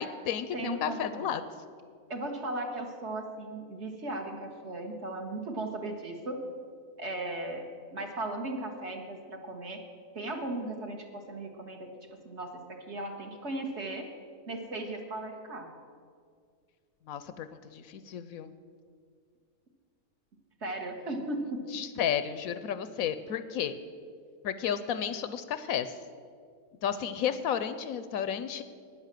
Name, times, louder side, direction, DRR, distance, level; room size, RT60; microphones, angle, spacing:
voice 1, 0.0-1.4 17.1-18.5 21.7-23.8 24.4-25.9 26.8-28.6, left 8 dB, 75° left, 12 dB, 1.0 m, -32 dB
voice 2, 0.5-1.3 2.1-6.4 7.0-9.8 10.1-11.9 12.3-14.1 14.5-15.7 20.6-21.6, right 2 dB, 50° right, 3 dB, 1.6 m, -37 dB
10.5 x 9.7 x 7.5 m, 2.1 s
omnidirectional pair, 1.6 m